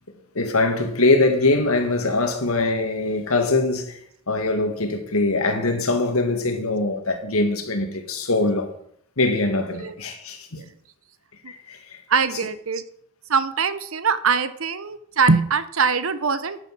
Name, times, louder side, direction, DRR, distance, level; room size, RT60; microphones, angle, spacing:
voice 1, 0.3-4.0 4.3-8.8 9.2-10.6 11.5-12.0, left 2 dB, 85° left, 2.0 m, -22 dB
voice 2, 12.1-12.8 13.3-16.6, right 5 dB, 70° right, 0.9 m, -22 dB
10.0 x 9.4 x 6.1 m
head